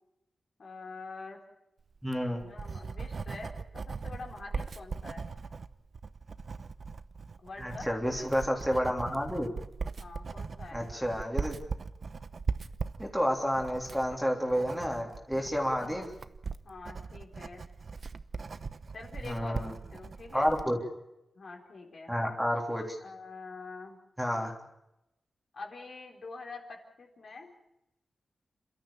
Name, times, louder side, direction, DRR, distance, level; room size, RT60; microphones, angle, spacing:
voice 1, 0.6-1.4 2.4-5.2 7.4-8.3 10.0-10.9 16.6-17.7 18.9-20.5 21.4-22.1 23.0-24.0 25.5-27.5, left 3 dB, 55° left, 2 dB, 4.1 m, -46 dB
voice 2, 2.0-2.4 7.6-9.5 10.7-11.6 13.0-16.1 19.2-19.7 20.3-20.8 22.1-23.0 24.2-24.5, equal, ahead, 0 dB, 3.3 m, -30 dB
Writing, 2.0-20.7, right 4 dB, 50° right, 0.9 m, -40 dB
28.5 x 13.5 x 8.8 m, 0.86 s
wide cardioid pair, 110°, 0 cm